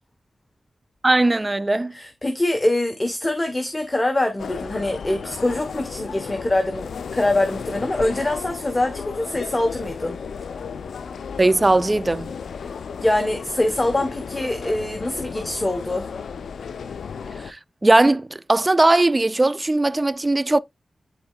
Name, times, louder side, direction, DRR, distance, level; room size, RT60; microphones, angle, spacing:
voice 1, 1.0-1.9 11.4-12.3 17.5-20.6, right 2 dB, 25° right, 0.4 m, -19 dB
voice 2, 1.9-10.2 13.0-16.1, left 1 dB, 25° left, 1.1 m, -24 dB
sound 1, 4.4-17.5, left 6 dB, 90° left, 0.5 m, -34 dB
11.5 x 4.3 x 2.3 m
cardioid pair, 60°, 0 cm